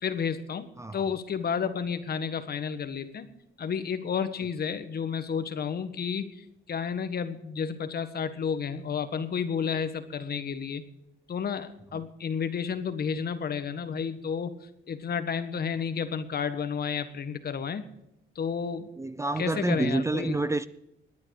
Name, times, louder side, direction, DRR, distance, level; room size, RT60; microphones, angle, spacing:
voice 1, 0.0-3.3 3.6-10.8 11.3-14.5 14.9-17.8 18.3-18.9 19.4-20.4, left 6 dB, 50° left, 1.5 m, -31 dB
voice 2, 0.8-1.1 11.9-12.0 19.0-20.7, right 2 dB, 15° right, 0.5 m, -28 dB
19.5 x 9.8 x 4.8 m
cardioid pair, 90°, 20 cm